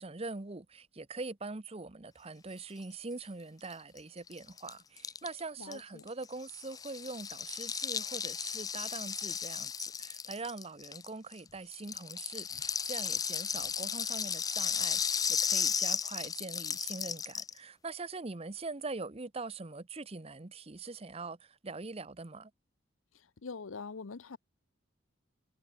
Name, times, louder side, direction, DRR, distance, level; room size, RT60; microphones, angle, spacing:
voice 1, 0.0-9.7 10.0-22.5, right 3 dB, 30° right, 0.8 m, -43 dB
Rattle (instrument), 3.7-3.8 4.0-4.1 4.3-11.4 11.7-17.6, left 7 dB, 20° left, 0.4 m, -34 dB
voice 2, 5.6-6.1 23.4-24.4, left 4 dB, 80° left, 0.7 m, -43 dB
head